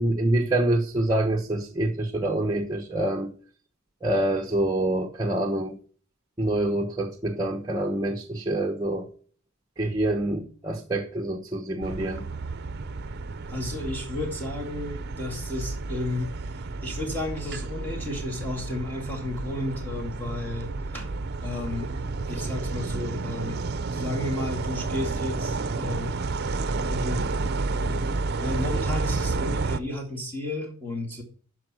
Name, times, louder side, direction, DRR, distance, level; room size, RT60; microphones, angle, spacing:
voice 1, 0.0-3.3 4.0-5.7 6.4-9.1 9.8-12.2, right 1 dB, 20° right, 0 dB, 1.0 m, -26 dB
sound 1, 11.8-29.8, right 3 dB, 50° right, 0.6 m, -31 dB
voice 2, 13.5-16.3 16.5-21.1 21.4-21.9 22.3-23.6 23.9-26.2 26.7-27.4 27.7-28.1 28.4-31.2, left 1 dB, 10° left, -2 dB, 2.2 m, -33 dB
13.0 x 4.9 x 6.2 m, 0.43 s
head